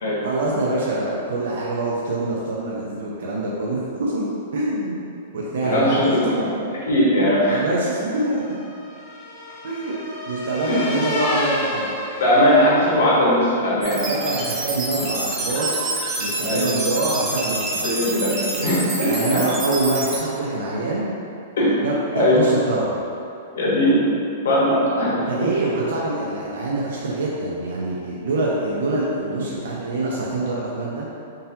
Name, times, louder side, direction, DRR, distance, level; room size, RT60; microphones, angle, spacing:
voice 1, 0.2-4.2 4.5-5.1 5.3-6.5 7.5-8.6 9.6-9.9 10.3-11.9 14.0-15.9 16.2-17.8 19.0-21.1 21.8-23.0 25.2-31.1, right 2 dB, 70° right, -5 dB, 0.5 m, -25 dB
voice 2, 5.6-6.5 6.8-7.6 10.7-10.9 12.2-14.0 16.4-16.7 17.8-18.3 18.6-19.4 21.6-21.8 22.1-22.4 23.5-24.0 24.4-25.2, equal, 85° left, -7 dB, 1.1 m, -19 dB
sound 1, 7.7-13.1, left 1 dB, 25° left, 0.6 m, -30 dB
sound 2, 13.8-20.2, right 2 dB, 25° right, 0.6 m, -27 dB
3.8 x 2.7 x 2.7 m, 2.6 s
supercardioid pair, 170°, 0 cm